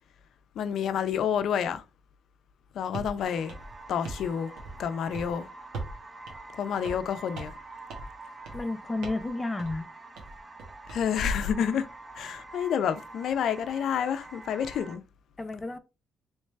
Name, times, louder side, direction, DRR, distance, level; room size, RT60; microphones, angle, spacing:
voice 1, 0.6-1.8 2.7-3.5 3.9-4.5 4.8-5.5 6.5-7.5 10.9-11.9 12.2-15.0, left 8 dB, 70° left, 0.4 m, -29 dB
sound 1, 2.9-3.1 3.5-4.3 4.6-4.9 5.1-5.3 5.7-6.0 6.3-6.4 6.8-7.1 7.3-7.6 7.9-8.1 8.4-8.7 9.0-9.3 9.6-9.8 10.1-11.0, right 3 dB, 75° right, 1.1 m, -40 dB
sound 2, 3.2-15.0, right 2 dB, 25° right, 0.7 m, -46 dB
voice 2, 8.5-9.9 15.4-15.8, left 2 dB, 25° left, 0.6 m, -31 dB
3.2 x 3.2 x 3.1 m
supercardioid pair, 60°, 0 cm